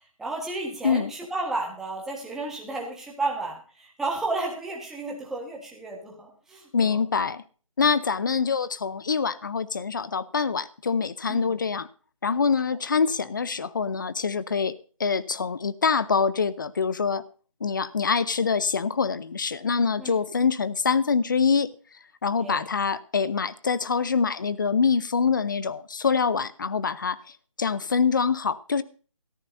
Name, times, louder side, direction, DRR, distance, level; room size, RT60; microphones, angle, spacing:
voice 1, 0.2-7.0 11.3-11.6 20.0-20.2 22.3-22.6, right 2 dB, ahead, -2 dB, 1.4 m, -32 dB
voice 2, 6.7-7.4 7.8-11.9 12.2-14.7 15.0-17.2 17.6-21.7 22.2-27.2 27.6-28.8, left 5 dB, 35° left, 17 dB, 0.7 m, -25 dB
17.0 x 14.0 x 2.7 m, 0.39 s
figure-of-eight pair, 165°, 17 cm